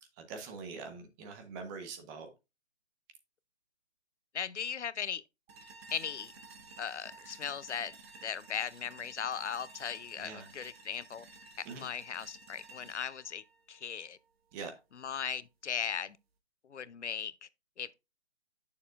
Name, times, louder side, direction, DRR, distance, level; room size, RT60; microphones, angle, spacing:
voice 1, 0.2-2.3 10.2-10.5 11.6-11.9 14.5-14.7, right 4 dB, 20° right, 1.1 m, -43 dB
voice 2, 4.3-5.2 5.9-6.3 6.8-7.9 8.2-11.2 11.6-14.2 14.9-16.2 16.7-17.5 17.8-17.9, left 7 dB, 85° left, 0.7 m, -38 dB
sound 1, 5.5-14.5, right 3 dB, 60° right, 1.7 m, -54 dB
9.3 x 6.7 x 2.5 m
hypercardioid pair, 150°, 34 cm